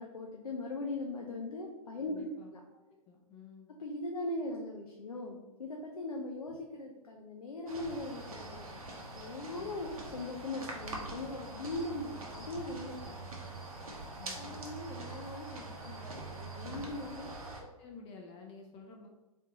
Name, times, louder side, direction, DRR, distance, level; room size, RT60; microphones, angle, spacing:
voice 1, 0.0-2.6 3.8-13.3 14.2-17.3, left 2 dB, 80° left, 0 dB, 0.6 m, -40 dB
voice 2, 2.1-2.5 3.1-3.7 9.6-9.8 14.2-14.6 16.7-16.9 17.6-19.1, left 5 dB, 30° left, 1 dB, 0.7 m, -51 dB
sound 1, 7.7-17.6, right 2 dB, 75° right, 0.9 m, -44 dB
3.7 x 3.5 x 2.9 m, 1.1 s
figure-of-eight pair, 105°, 18 cm